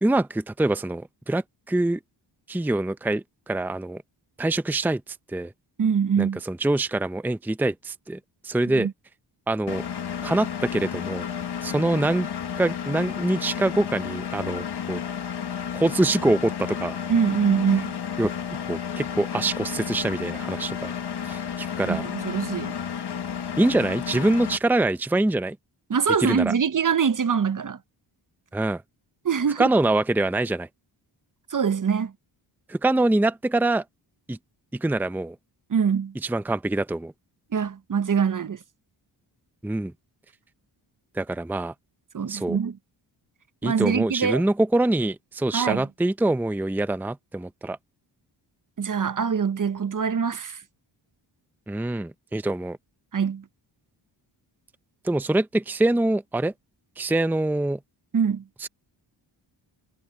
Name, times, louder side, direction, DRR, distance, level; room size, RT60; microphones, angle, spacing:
voice 1, 0.0-2.0 2.5-4.0 4.4-5.0 5.3-5.5 6.2-8.9 9.5-9.8 10.2-11.3 11.6-12.3 12.6-15.0 15.7-17.0 18.2-18.3 18.7-20.9 21.2-22.0 23.6-25.6 26.2-26.5 28.5-28.8 29.6-30.7 32.7-33.8 34.3-34.4 34.7-35.4 36.2-37.1 39.6-39.9 41.1-41.7 42.3-42.6 43.6-47.8 51.7-52.8 55.0-56.5 57.0-57.8 58.6-58.7, right 2 dB, 5° right, 0.7 m, -24 dB
voice 2, 5.8-6.4 8.7-8.9 17.1-18.0 21.9-22.8 25.9-27.8 29.2-29.7 31.5-32.1 35.7-36.2 37.5-38.6 42.1-42.8 43.6-44.4 45.5-45.9 48.8-50.6 53.1-53.4 58.1-58.4, right 6 dB, 40° right, 1.0 m, -24 dB
Engine, 9.7-24.6, left 8 dB, 55° left, 1.5 m, -32 dB
cardioid pair, 70°, 47 cm